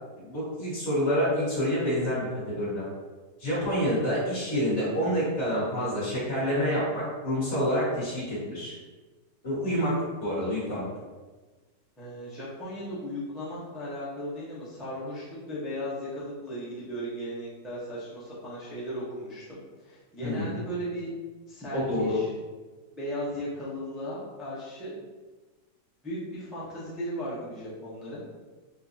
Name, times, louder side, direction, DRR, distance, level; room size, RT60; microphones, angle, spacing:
voice 1, 0.2-2.9 3.4-8.7 9.4-10.8 20.2-20.5 21.7-22.2, equal, 45° left, -10 dB, 2.0 m, -28 dB
voice 2, 12.0-21.1 21.5-22.3 22.9-24.9 26.0-28.2, equal, ahead, -10 dB, 0.5 m, -36 dB
5.1 x 2.1 x 2.7 m, 1.3 s
omnidirectional pair, 1.7 m